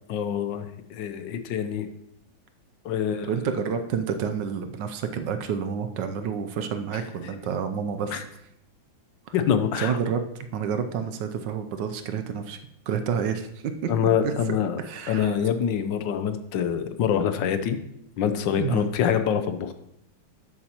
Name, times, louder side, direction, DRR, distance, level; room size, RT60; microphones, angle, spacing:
voice 1, 0.1-1.9 2.8-3.3 8.1-8.2 9.3-10.0 13.9-14.8 15.1-17.8 18.2-19.7, left 8 dB, 70° left, 10 dB, 1.3 m, -25 dB
voice 2, 3.3-8.2 9.3-9.4 9.8-12.6 12.9-13.9 14.2-15.3 18.6-18.9, right 7 dB, 75° right, 8 dB, 1.2 m, -29 dB
11.5 x 8.5 x 2.9 m, 0.79 s
omnidirectional pair, 2.1 m